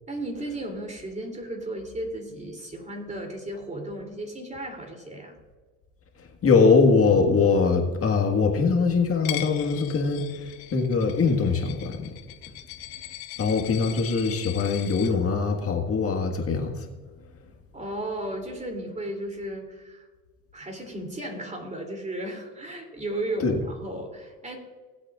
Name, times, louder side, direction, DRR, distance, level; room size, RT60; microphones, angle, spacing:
voice 1, 0.1-5.3 17.7-20.1 20.5-24.6, right 1 dB, 20° right, 2 dB, 3.0 m, -34 dB
voice 2, 6.4-10.3 10.7-12.1 13.4-16.8 23.4-23.6, left 4 dB, 40° left, 2 dB, 1.7 m, -22 dB
Coin (dropping), 9.2-15.1, left 14 dB, 80° left, 1.1 m, -39 dB
19.0 x 8.2 x 2.5 m, 1.4 s
supercardioid pair, 95°, 36 cm